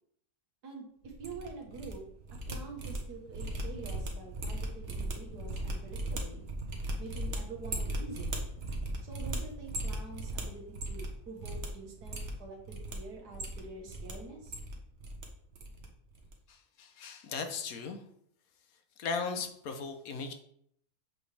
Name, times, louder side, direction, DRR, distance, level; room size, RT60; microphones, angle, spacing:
voice 1, 0.6-2.0 2.5-6.5 7.0-8.4 9.0-14.6, right 3 dB, 75° right, 1 dB, 1.9 m, -46 dB
sound 1, 1.0-1.9 2.2-11.1 11.4-11.7 12.0-12.9 13.3-14.1 14.4-15.2 15.5-16.3, right 1 dB, 50° right, 1.3 m, -37 dB
voice 2, 16.5-18.0 19.0-20.3, left 5 dB, 65° left, 7 dB, 1.3 m, -37 dB
7.8 x 5.1 x 3.4 m, 0.68 s
omnidirectional pair, 1.7 m